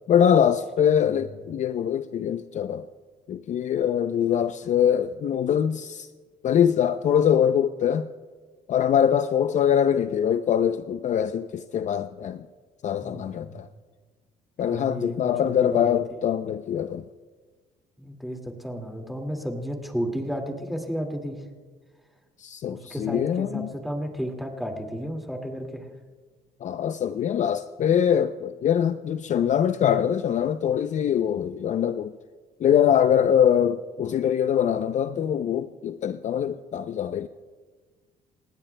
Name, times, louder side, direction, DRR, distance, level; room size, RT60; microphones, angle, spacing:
voice 1, 0.1-2.9 3.3-6.1 6.4-8.1 8.7-12.4 12.8-13.7 14.6-17.0 22.4-23.7 26.6-32.1 32.6-37.3, left 9 dB, 45° left, 0.5 m, -23 dB
voice 2, 13.0-13.6 14.6-15.2 15.4-16.0 18.0-21.4 22.7-25.9, equal, ahead, 2.0 m, -33 dB
29.5 x 16.0 x 2.2 m
cardioid pair, 110°, 17 cm